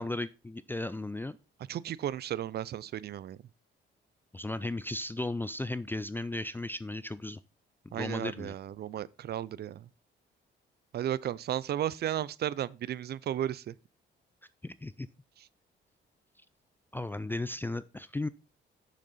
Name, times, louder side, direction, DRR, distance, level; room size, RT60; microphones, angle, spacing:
voice 1, 0.0-1.4 4.3-7.4 7.9-8.5 14.6-15.1 16.9-18.3, left 2 dB, 10° left, 0.3 m, -35 dB
voice 2, 1.7-3.4 7.9-9.9 10.9-13.7, right 11 dB, 55° right, 0.5 m, -34 dB
6.6 x 6.4 x 4.1 m
cardioid pair, 90°, 20 cm